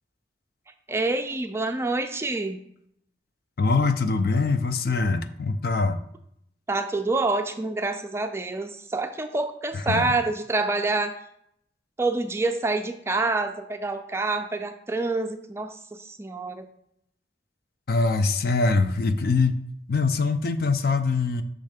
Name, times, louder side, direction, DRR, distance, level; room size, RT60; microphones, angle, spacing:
voice 1, 0.9-2.6 6.7-11.2 12.0-16.7, right 3 dB, 15° right, 7 dB, 0.3 m, -27 dB
voice 2, 3.6-6.0 9.7-10.1 17.9-21.4, left 3 dB, 55° left, 9 dB, 0.4 m, -23 dB
6.3 x 3.2 x 5.0 m, 0.72 s
head